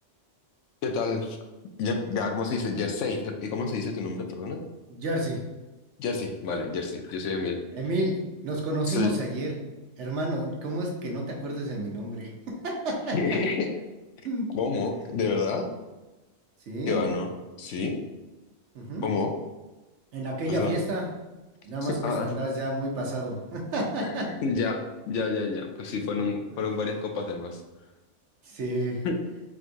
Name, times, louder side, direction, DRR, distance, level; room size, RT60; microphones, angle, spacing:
voice 1, 0.8-1.4 1.8-4.6 6.0-7.6 8.9-9.1 13.1-13.8 14.5-15.7 16.9-17.3 17.6-18.0 19.0-19.3 20.5-20.7 21.8-22.3 24.0-24.8 25.1-27.6 29.0-29.1, left 4 dB, 75° left, 4 dB, 0.9 m, -29 dB
voice 2, 4.9-5.4 7.7-9.6 10.0-12.3 12.6-13.4 14.2-14.5 16.7-17.0 18.7-19.2 20.1-21.1 21.6-24.3 25.9-26.0 28.4-29.0, right 1 dB, 70° right, -1 dB, 1.1 m, -30 dB
4.5 x 3.7 x 2.6 m, 1.1 s
omnidirectional pair, 1.3 m